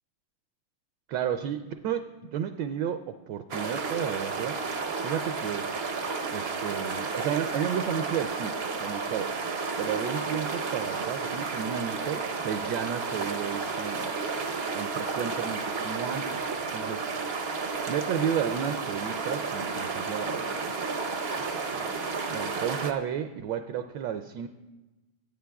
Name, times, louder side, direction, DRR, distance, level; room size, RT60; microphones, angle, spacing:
voice 1, 1.1-4.6 5.0-5.7 6.3-9.3 9.8-17.1 17.9-20.8 21.4-24.5, right 9 dB, 75° right, 9 dB, 1.2 m, -33 dB
sound 1, 3.5-22.9, right 4 dB, 55° right, 0.6 m, -32 dB
25.0 x 9.3 x 2.3 m, 1.1 s
omnidirectional pair, 2.2 m